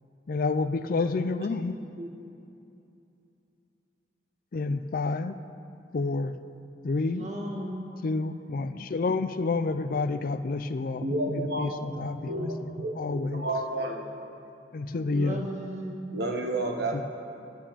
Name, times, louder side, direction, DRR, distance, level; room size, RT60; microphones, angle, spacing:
voice 1, 0.3-1.8 4.5-5.4 5.9-6.3 6.8-7.3 8.0-12.5 13.0-13.5 14.7-15.5 16.9-17.0, left 3 dB, 50° left, 11 dB, 0.4 m, -29 dB
voice 2, 7.1-7.9 12.2-12.7 15.1-16.0, equal, 40° right, -1 dB, 1.9 m, -36 dB
voice 3, 11.0-14.1 16.1-17.0, right 1 dB, 65° right, 2 dB, 1.3 m, -31 dB
10.5 x 7.1 x 8.9 m, 2.8 s
head